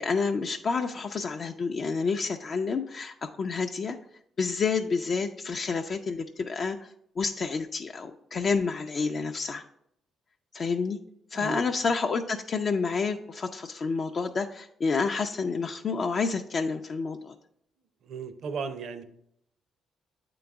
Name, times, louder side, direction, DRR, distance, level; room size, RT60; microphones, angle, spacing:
voice 1, 0.0-4.0 4.4-6.9 7.2-9.6 10.5-11.0 11.3-17.3, left 4 dB, 50° left, 4 dB, 0.4 m, -29 dB
voice 2, 18.0-19.0, right 5 dB, 70° right, 10 dB, 0.6 m, -35 dB
8.4 x 3.9 x 3.5 m, 0.73 s
cardioid pair, 90°, 0 cm